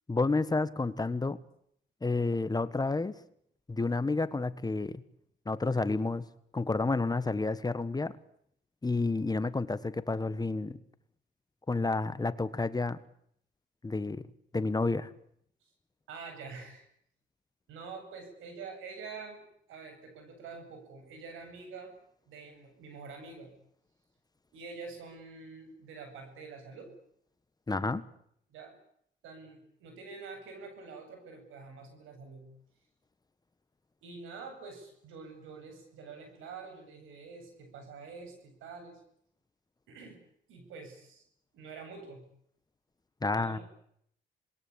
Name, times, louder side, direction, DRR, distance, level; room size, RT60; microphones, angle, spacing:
voice 1, 0.1-1.4 2.0-3.2 3.7-4.9 5.5-6.2 6.5-8.2 8.8-10.8 11.7-13.0 13.8-14.2 14.5-15.1 27.7-28.1 43.2-43.6, left 3 dB, 20° left, 14 dB, 1.4 m, -30 dB
voice 2, 16.1-16.8 17.7-21.9 22.2-23.5 24.5-26.9 28.5-28.8 29.2-32.5 34.0-39.0 39.9-41.2 41.5-42.3 43.3-43.6, right 4 dB, 90° right, 6 dB, 8.0 m, -46 dB
27.0 x 21.0 x 8.7 m, 0.70 s
cardioid pair, 90°, 20 cm